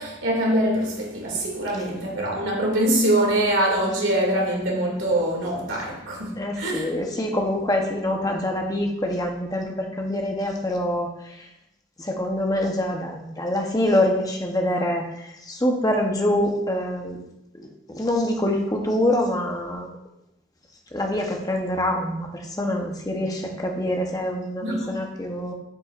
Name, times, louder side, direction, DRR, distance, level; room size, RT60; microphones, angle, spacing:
voice 1, 0.0-6.9 24.6-25.0, right 1 dB, 80° right, 2.4 m, -24 dB
voice 2, 6.4-11.5 12.0-17.2 17.5-17.7 17.9-19.9 20.9-25.5, left 1 dB, 20° left, 0.9 m, -25 dB
8.6 x 8.0 x 2.5 m
head